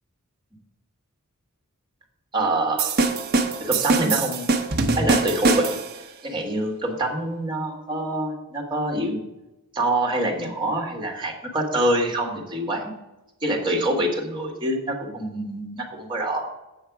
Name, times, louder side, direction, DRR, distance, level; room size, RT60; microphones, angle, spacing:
voice 1, 2.3-2.9 3.6-4.5 5.0-5.8 6.2-9.2 9.7-12.9 13.4-16.5, right 1 dB, 20° right, 0 dB, 1.6 m, -25 dB
sound 1, 2.8-6.0, right 3 dB, 45° right, 0.7 m, -23 dB
8.1 x 5.6 x 4.8 m, 0.98 s
head